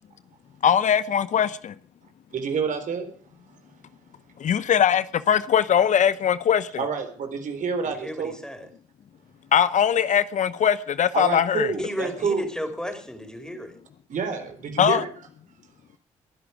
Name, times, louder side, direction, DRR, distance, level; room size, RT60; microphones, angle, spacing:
voice 1, 0.6-1.7 4.4-6.8 9.5-11.7 14.8-15.0, left 8 dB, 55° left, 0.8 m, -21 dB
voice 2, 2.3-3.1 6.8-8.3 11.1-12.5 14.1-15.1, right 6 dB, 60° right, 3.8 m, -28 dB
voice 3, 8.0-8.7 11.8-13.8, equal, 5° left, 4.9 m, -33 dB
22.0 x 11.0 x 4.9 m
hypercardioid pair, 45°, 15 cm